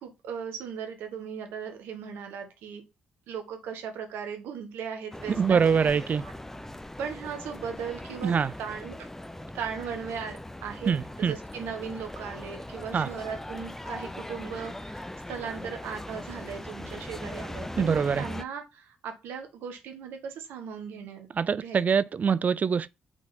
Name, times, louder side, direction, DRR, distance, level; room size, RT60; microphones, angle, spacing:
voice 1, 0.0-2.8 3.3-5.9 6.2-6.3 7.0-9.1 9.5-22.0, right 7 dB, 75° right, 1.4 m, -38 dB
sound 1, 5.1-18.4, left 1 dB, 10° left, 0.7 m, -40 dB
voice 2, 5.4-6.2 8.2-8.5 10.9-11.4 12.9-13.1 17.8-18.2 21.4-22.9, right 6 dB, 45° right, 0.4 m, -24 dB
5.9 x 4.1 x 4.1 m
hypercardioid pair, 45°, 4 cm